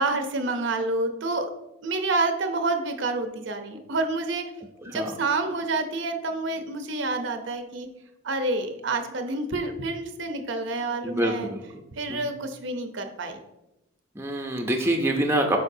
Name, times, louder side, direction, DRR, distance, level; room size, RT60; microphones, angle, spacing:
voice 1, 0.0-1.5 1.8-4.5 4.9-7.9 8.2-11.5 11.9-13.4, right 2 dB, 65° right, 7 dB, 0.7 m, -28 dB
voice 2, 4.8-5.1 11.0-11.6 12.1-12.2 14.2-15.6, right 1 dB, 10° right, 3 dB, 0.6 m, -25 dB
8.0 x 5.1 x 2.7 m, 0.92 s
head